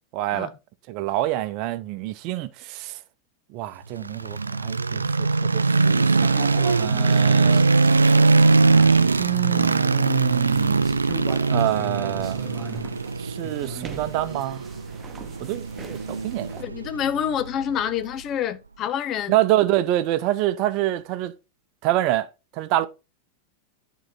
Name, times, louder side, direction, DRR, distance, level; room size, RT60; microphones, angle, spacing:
voice 1, 0.1-0.5 0.9-3.0 3.5-7.7 9.2-11.0 11.5-12.4 13.2-14.6 15.4-16.6 19.3-21.3 21.8-22.3 22.5-22.9, right 14 dB, 45° right, 0.7 m, -26 dB
sound 1, 4.0-18.1, right 3 dB, 80° right, 0.3 m, -21 dB
sound 2, 6.1-16.6, right 4 dB, 15° right, 1.2 m, -39 dB
voice 2, 16.6-19.4, left 9 dB, 35° left, 0.6 m, -27 dB
11.0 x 3.9 x 3.8 m
figure-of-eight pair, 90°, 0 cm